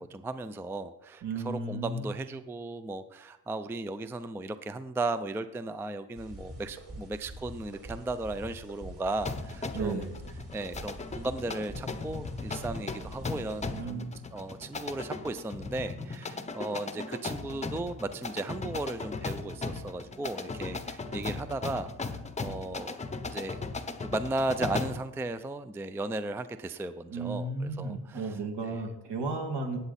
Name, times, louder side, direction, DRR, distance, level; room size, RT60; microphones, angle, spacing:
voice 1, 0.1-10.1 10.5-23.0 23.3-23.6 24.0-28.4 28.7-28.8, right 2 dB, 5° right, 12 dB, 0.4 m, -36 dB
voice 2, 1.2-2.1 9.7-10.1 13.7-14.2 27.1-29.8, right 3 dB, 65° right, 3 dB, 2.5 m, -34 dB
sound 1, 6.2-13.8, right 1 dB, 35° right, 3.0 m, -45 dB
sound 2, 9.2-25.1, left 3 dB, 15° left, 0.8 m, -37 dB
17.5 x 8.2 x 4.2 m, 0.89 s
cardioid pair, 130°, 42 cm